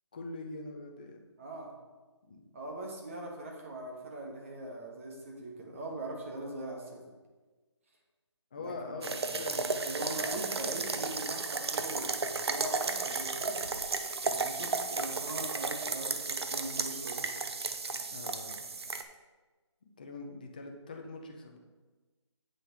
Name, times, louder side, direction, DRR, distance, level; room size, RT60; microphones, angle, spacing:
voice 1, 0.1-1.2 2.2-2.4 8.5-10.1 18.1-18.7 19.8-21.6, left 3 dB, 15° left, 3 dB, 0.5 m, -43 dB
voice 2, 1.4-1.7 2.5-7.0 8.6-9.0 9.3-9.4 9.8-13.7 14.3-17.3, right 1 dB, 25° right, 0 dB, 1.3 m, -41 dB
sound 1, 9.0-19.0, right 4 dB, 60° right, 0.7 m, -34 dB
8.0 x 6.5 x 4.7 m, 1.3 s
hypercardioid pair, 175°, 15 cm